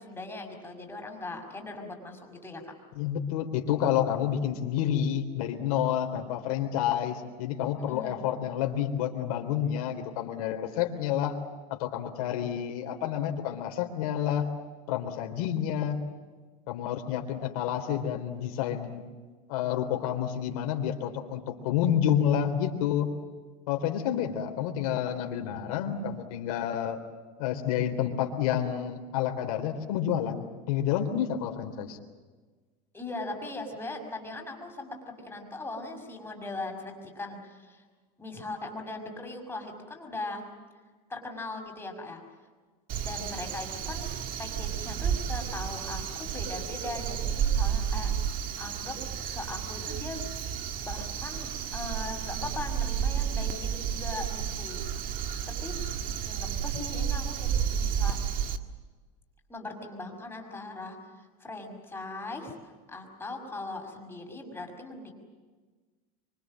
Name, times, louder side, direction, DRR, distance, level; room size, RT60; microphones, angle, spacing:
voice 1, 0.0-2.7 7.8-8.2 32.9-37.8 38.2-40.4 41.1-42.2 43.0-44.1 44.4-48.1 48.6-50.2 50.8-54.8 55.5-55.7 56.3-58.2 59.5-65.1, left 2 dB, 10° left, 3 dB, 5.9 m, -39 dB
voice 2, 3.0-11.4 11.7-14.5 14.9-16.0 16.7-19.0 19.5-23.1 23.7-27.0 27.4-32.0, left 9 dB, 75° left, 4 dB, 3.7 m, -29 dB
Crow, 42.9-58.6, right 8 dB, 45° right, 1.9 m, -31 dB
25.5 x 24.5 x 7.7 m, 1.4 s
supercardioid pair, 125°, 19 cm